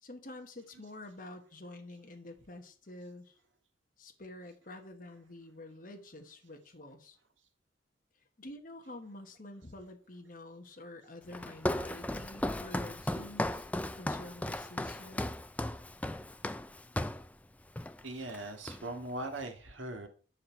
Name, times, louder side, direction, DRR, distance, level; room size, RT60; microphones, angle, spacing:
voice 1, 0.0-3.4 4.0-7.2 8.4-13.7 14.0-15.3, left 2 dB, 45° left, 4 dB, 1.3 m, -48 dB
Walk footsteps, 11.3-17.3 17.8-18.0 18.3-19.1, left 1 dB, 10° left, 0.3 m, -36 dB
voice 2, 18.0-20.1, right 1 dB, 90° right, 4 dB, 1.8 m, -40 dB
9.8 x 5.9 x 4.5 m, 0.39 s
head